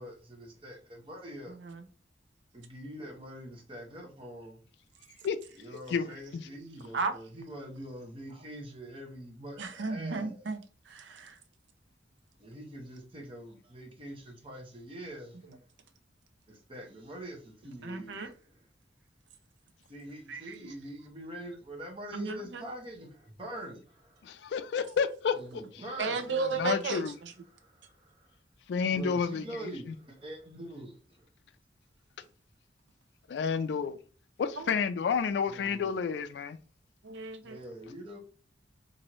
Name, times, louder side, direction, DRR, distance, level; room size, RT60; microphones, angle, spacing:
voice 1, 0.0-1.5 2.5-4.6 5.6-10.4 12.4-15.6 16.5-18.2 19.9-24.3 25.3-26.2 26.5-26.6 27.5-28.3 28.9-31.3 35.5-35.9 37.4-38.2, equal, 30° right, 0.8 m, -44 dB
voice 2, 1.5-1.9 6.9-7.1 9.6-10.6 10.9-11.4 15.5-15.6 17.8-18.3 20.3-20.6 22.1-22.6 26.0-27.3 34.6-34.7 37.0-37.6, right 4 dB, 80° right, 0.5 m, -34 dB
voice 3, 5.9-6.5 24.2-25.3 26.6-27.1 28.7-29.5 33.3-34.0 34.4-36.6, left 6 dB, 70° left, 0.3 m, -30 dB
3.0 x 2.6 x 2.9 m
head